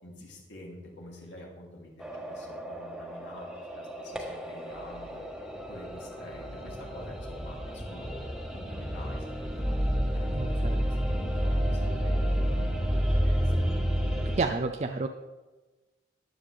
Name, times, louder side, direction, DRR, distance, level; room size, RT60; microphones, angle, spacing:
voice 1, 0.0-5.2 5.5-9.8 10.1-11.0 11.2-12.7 13.0-13.5, left 1 dB, 90° left, -3 dB, 2.8 m, -48 dB
sound 1, 2.0-14.4, equal, 5° right, 1.3 m, -30 dB
voice 2, 10.3-10.8 14.4-15.1, right 3 dB, 40° right, 5 dB, 0.4 m, -30 dB
14.5 x 10.5 x 3.4 m, 1.2 s
head